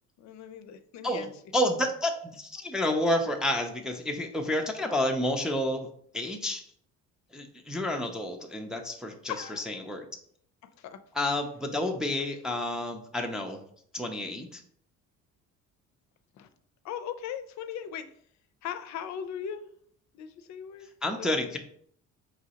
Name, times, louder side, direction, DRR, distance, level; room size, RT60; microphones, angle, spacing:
voice 1, 0.2-1.3 9.3-9.6 10.6-11.0 16.3-16.5 16.8-18.1 18.6-19.6 20.1-20.9 21.2-21.6, left 9 dB, 65° left, 10 dB, 0.5 m, -38 dB
voice 2, 1.0-5.9 6.1-6.7 7.3-10.1 11.1-13.6 13.9-14.6 21.0-21.6, left 1 dB, ahead, 2 dB, 0.3 m, -30 dB
4.9 x 3.1 x 2.8 m, 0.64 s
cardioid pair, 140°, 31 cm